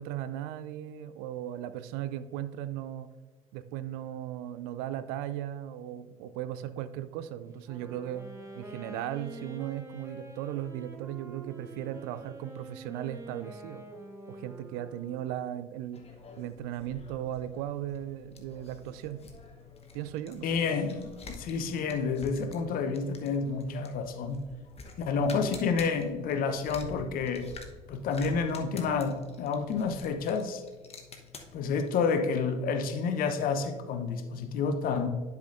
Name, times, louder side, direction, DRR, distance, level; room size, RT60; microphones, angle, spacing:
voice 1, 0.0-3.1 3.5-8.2 8.5-13.8 14.3-16.0 16.4-19.2 19.9-20.5, right 12 dB, 60° right, 13 dB, 0.4 m, -37 dB
Wind instrument woodwind instrument, 7.6-15.7, right 2 dB, 15° right, 1.5 m, -46 dB
sound 1, 15.9-32.0, left 4 dB, 35° left, 1.1 m, -49 dB
voice 2, 20.4-24.4 25.0-27.5 27.9-30.6 31.5-35.1, left 5 dB, 50° left, 8 dB, 0.8 m, -29 dB
11.0 x 5.8 x 2.6 m, 1.4 s
figure-of-eight pair, 50°, 19 cm